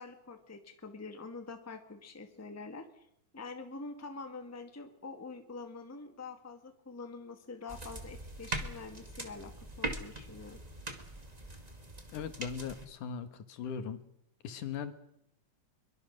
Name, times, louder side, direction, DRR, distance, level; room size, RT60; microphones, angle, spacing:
voice 1, 0.0-3.1 3.3-9.5 9.8-10.6, left 3 dB, 5° left, 6 dB, 1.3 m, -46 dB
sound 1, 7.7-12.9, right 2 dB, 15° right, 1.7 m, -41 dB
voice 2, 12.1-14.0 14.4-14.9, left 7 dB, 80° left, 9 dB, 3.0 m, -39 dB
23.5 x 23.0 x 6.6 m, 0.76 s
omnidirectional pair, 3.6 m